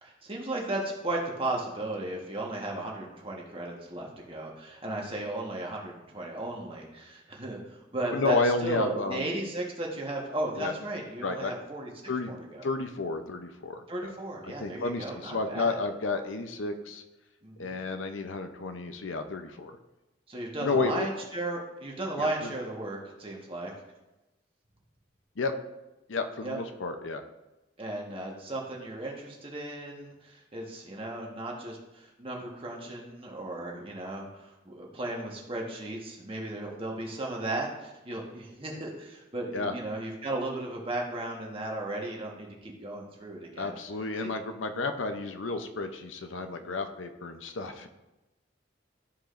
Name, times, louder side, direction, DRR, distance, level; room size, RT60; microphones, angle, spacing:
voice 1, 0.0-8.4 8.6-11.9 12.3-12.7 13.9-15.8 17.4-17.8 20.3-23.7 26.4-26.6 27.8-43.7 44.2-44.3, right 2 dB, 30° right, -1 dB, 1.3 m, -35 dB
voice 2, 8.1-9.3 10.6-10.7 11.2-11.5 12.1-12.3 12.6-14.1 14.4-17.0 17.6-19.8 20.6-21.1 22.2-22.3 25.4-25.5 26.1-27.2 39.5-39.7 43.6-47.9, left 3 dB, 85° left, 7 dB, 0.7 m, -31 dB
13.0 x 5.0 x 2.6 m, 1.0 s
head